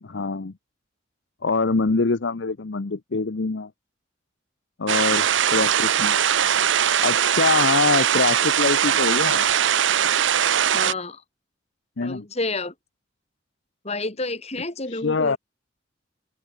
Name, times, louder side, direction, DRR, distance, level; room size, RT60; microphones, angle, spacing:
voice 1, 0.0-0.5 1.4-3.7 4.8-5.3 5.5-6.2 7.0-9.5 12.0-12.3 14.9-15.4, left 4 dB, 70° left, 0.8 m, -24 dB
sound 1, 4.9-10.9, right 9 dB, 75° right, 0.7 m, -20 dB
voice 2, 10.7-11.2 12.0-12.7 13.8-15.4, left 2 dB, 35° left, 3.0 m, -30 dB
open air
head